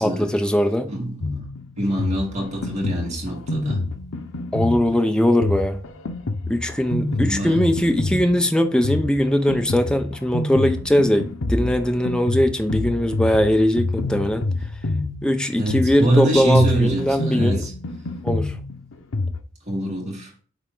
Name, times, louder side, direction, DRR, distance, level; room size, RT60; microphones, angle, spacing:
voice 1, 0.0-0.9 4.5-5.8 6.5-14.4 15.2-17.6 18.2-18.5, equal, 5° left, 0.7 m, -20 dB
voice 2, 0.9-1.4 1.8-3.8 6.9-7.6 15.6-17.7 19.7-20.3, right 1 dB, 35° right, 2.3 m, -24 dB
Drum kit, 1.2-19.4, left 2 dB, 90° left, 0.8 m, -28 dB
9.0 x 3.6 x 3.8 m
head